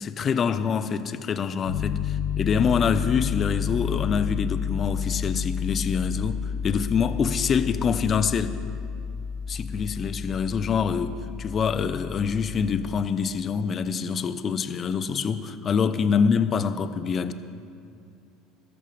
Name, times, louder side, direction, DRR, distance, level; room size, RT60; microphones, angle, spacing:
voice 1, 0.0-8.6 9.5-17.3, left 6 dB, 40° left, 11 dB, 0.9 m, -25 dB
Piano, 1.7-13.0, left 7 dB, 80° left, 1.2 m, -31 dB
21.5 x 13.0 x 3.4 m, 2.5 s
hypercardioid pair, 75°, 0 cm